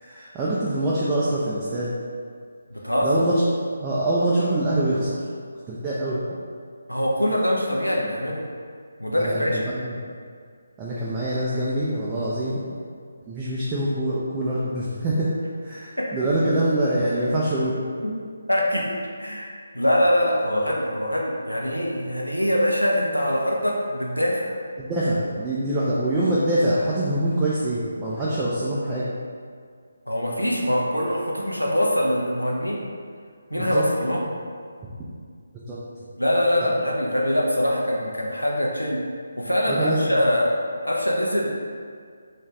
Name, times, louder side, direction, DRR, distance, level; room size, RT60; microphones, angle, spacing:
voice 1, 0.0-1.9 3.0-3.4 3.8-5.2 5.7-6.2 9.2-10.0 10.8-12.6 13.3-15.3 15.6-17.8 24.8-29.1 33.5-33.8 35.7-35.8 39.7-40.1, right 1 dB, 15° right, -8 dB, 0.3 m, -24 dB
voice 2, 2.7-3.2 6.9-8.4 9.0-9.7 16.0-16.1 18.0-18.1 18.5-24.6 30.1-32.8 33.5-34.3 36.2-39.0 39.4-40.6 40.8-41.5, equal, 90° left, -2 dB, 0.5 m, -23 dB
2.5 x 2.3 x 3.1 m, 2.1 s
figure-of-eight pair, 150°, 0 cm